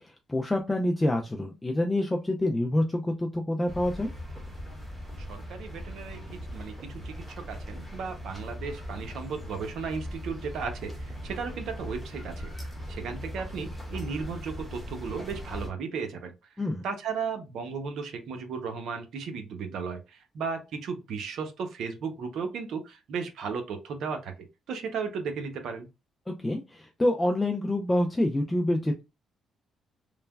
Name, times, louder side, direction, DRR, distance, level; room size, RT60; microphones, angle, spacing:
voice 1, 0.0-4.1 16.6-16.8 26.4-29.0, left 1 dB, 15° left, 0.4 m, -27 dB
sound 1, 3.7-15.7, equal, 10° right, 1.1 m, -39 dB
voice 2, 5.2-6.7 7.0-12.5 12.9-16.3 16.8-24.3 24.7-25.9, right 5 dB, 75° right, 0.6 m, -35 dB
3.1 x 2.1 x 2.2 m
cardioid pair, 90°, 0 cm